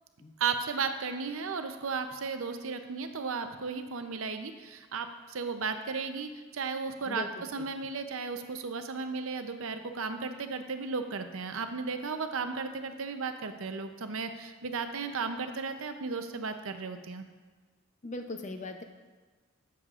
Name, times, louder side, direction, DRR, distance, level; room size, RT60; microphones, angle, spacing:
voice 1, 0.4-17.3, right 5 dB, 70° right, 7 dB, 0.6 m, -35 dB
voice 2, 18.0-18.8, left 2 dB, 35° left, 6 dB, 0.6 m, -39 dB
13.0 x 7.1 x 2.5 m, 1.4 s
head